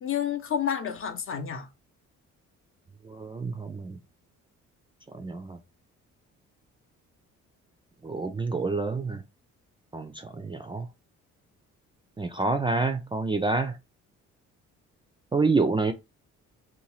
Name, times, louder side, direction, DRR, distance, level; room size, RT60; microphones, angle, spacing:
voice 1, 0.0-1.7, left 8 dB, 45° left, 0.7 m, -29 dB
voice 2, 3.0-4.0 5.1-5.6 8.0-9.2 9.9-10.9 12.2-13.8 15.3-15.9, right 3 dB, 15° right, 0.3 m, -28 dB
2.7 x 2.2 x 3.0 m
cardioid pair, 90°, 30 cm